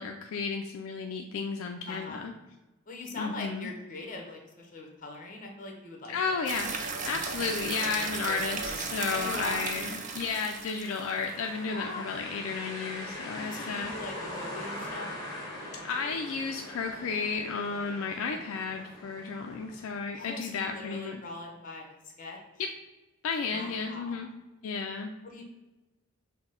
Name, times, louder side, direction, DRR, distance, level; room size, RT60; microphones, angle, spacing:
voice 1, 0.0-2.3 3.2-3.7 6.1-6.7 7.0-13.9 15.8-21.2 22.6-22.7 23.2-24.3 24.6-25.1, left 5 dB, 70° left, 3 dB, 0.3 m, -33 dB
voice 2, 1.9-2.3 2.9-6.4 9.1-9.7 11.7-12.0 13.4-15.1 18.3-18.4 20.1-22.4 23.5-24.2 25.2-25.4, left 2 dB, 40° left, 1 dB, 0.8 m, -41 dB
sound 1, 6.5-11.3, right 4 dB, 35° right, 0.4 m, -35 dB
sound 2, 10.7-20.5, left 1 dB, 15° left, 1.1 m, -42 dB
5.9 x 2.1 x 3.7 m, 1.1 s
head